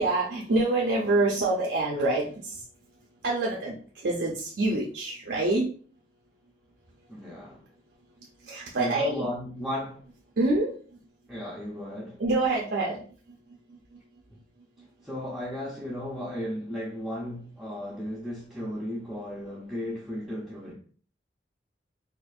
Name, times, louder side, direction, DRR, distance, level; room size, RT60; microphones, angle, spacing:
voice 1, 0.0-2.6 3.2-5.7 8.5-9.3 10.4-10.7 12.2-13.0, right 2 dB, 75° right, 0.6 m, -26 dB
voice 2, 7.1-7.7 8.8-10.0 11.3-12.2 15.0-20.7, left 1 dB, ahead, 0.6 m, -35 dB
4.3 x 2.5 x 2.4 m
head